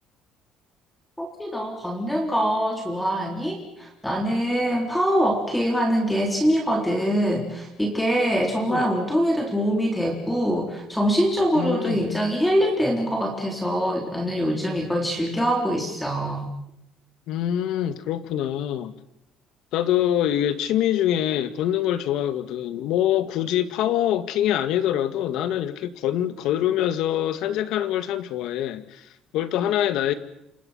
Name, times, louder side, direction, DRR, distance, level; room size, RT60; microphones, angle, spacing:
voice 1, 1.2-16.4, equal, 5° left, 2 dB, 3.6 m, -24 dB
voice 2, 11.5-12.1 17.3-19.0 19.7-30.1, left 11 dB, 70° left, 11 dB, 2.0 m, -25 dB
28.5 x 26.5 x 5.8 m, 0.82 s
cardioid pair, 155°, 0 cm